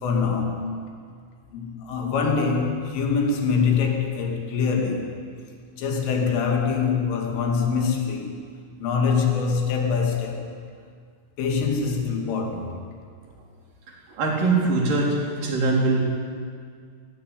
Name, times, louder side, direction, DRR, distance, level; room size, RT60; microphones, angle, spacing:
voice 1, 0.0-0.7 1.5-5.2 5.8-8.3 8.8-10.5 11.4-12.8, left 5 dB, 75° left, 2 dB, 5.0 m, -24 dB
voice 2, 14.1-16.0, right 3 dB, 45° right, -2 dB, 5.0 m, -22 dB
21.5 x 15.5 x 9.9 m, 2.1 s
omnidirectional pair, 5.9 m